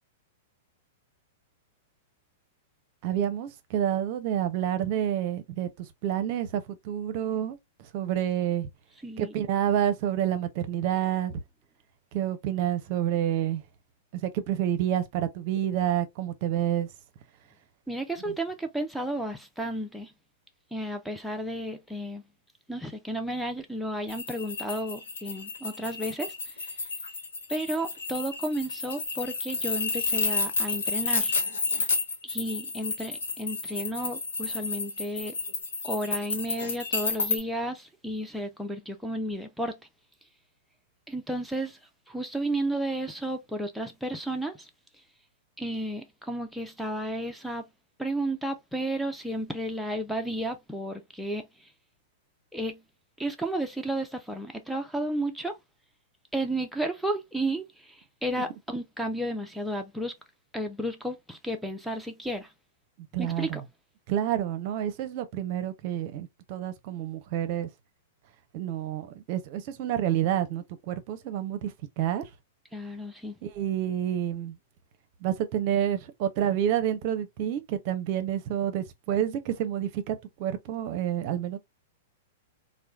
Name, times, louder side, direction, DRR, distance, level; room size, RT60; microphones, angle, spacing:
voice 1, 3.0-7.6 7.9-8.7 9.2-11.4 12.1-13.6 14.2-16.9 63.1-63.6 64.1-67.7 68.5-72.2 73.4-74.6 75.2-81.6, right 10 dB, 50° right, 0.6 m, -28 dB
voice 2, 9.0-9.3 17.9-20.1 20.7-22.2 22.7-26.3 27.5-31.4 32.2-35.3 35.8-39.8 41.1-41.8 42.1-44.7 45.6-47.6 48.0-51.7 52.5-52.8 53.2-55.5 56.3-60.1 60.5-62.5 63.2-63.6 72.7-73.3, right 1 dB, ahead, 0.5 m, -32 dB
sound 1, 24.1-37.4, left 3 dB, 75° left, 1.0 m, -31 dB
3.0 x 2.1 x 2.3 m
hypercardioid pair, 110°, 0 cm